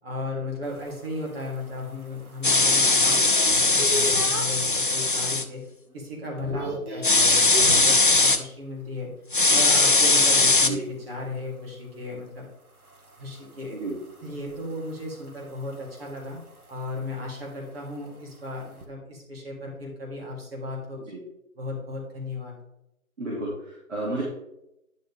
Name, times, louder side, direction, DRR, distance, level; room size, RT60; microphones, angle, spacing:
voice 1, 0.0-3.2 3.5-9.1 9.5-12.5 13.2-13.7 14.2-16.4 16.7-21.0 21.5-22.5, left 2 dB, 40° right, -2 dB, 3.4 m, -35 dB
sound 1, 0.6-4.7 5.2-5.6 5.9-8.0 10.5-18.9, equal, 75° right, 2.0 m, -40 dB
sound 2, 2.4-5.4 7.0-8.4 9.3-10.7, left 3 dB, 35° left, 0.5 m, -19 dB
voice 2, 23.2-24.2, right 2 dB, 55° right, -5 dB, 2.9 m, -32 dB
10.5 x 6.5 x 3.5 m, 0.84 s
figure-of-eight pair, 150°, 43 cm